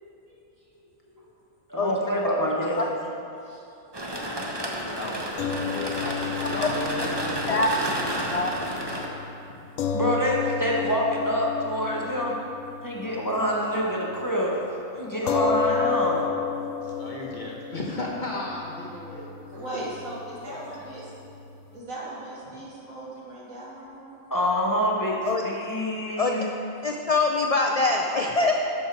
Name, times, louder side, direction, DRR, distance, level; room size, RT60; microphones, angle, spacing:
voice 1, 0.2-1.2 1.7-1.8 3.4-3.6 19.5-21.0 21.7-24.3 25.6-25.7 26.8-26.9, right 1 dB, 80° right, -6 dB, 2.6 m, -39 dB
voice 2, 1.7-2.9 9.9-12.3 12.8-14.5 15.0-16.2 24.3-26.4, equal, 15° left, -4 dB, 1.1 m, -26 dB
sound 1, 3.9-9.1, right 1 dB, 20° right, 0.9 m, -31 dB
voice 3, 4.9-7.8 16.8-19.8 20.4-20.7 22.5-22.6, left 1 dB, 35° left, -3 dB, 1.4 m, -35 dB
sound 2, 5.4-13.9 14.2-14.4 15.3-21.8, left 6 dB, 75° left, 1.0 m, -32 dB
voice 4, 26.8-28.6, left 3 dB, 55° left, 1 dB, 0.4 m, -23 dB
11.5 x 6.4 x 4.7 m, 2.7 s
omnidirectional pair, 1.4 m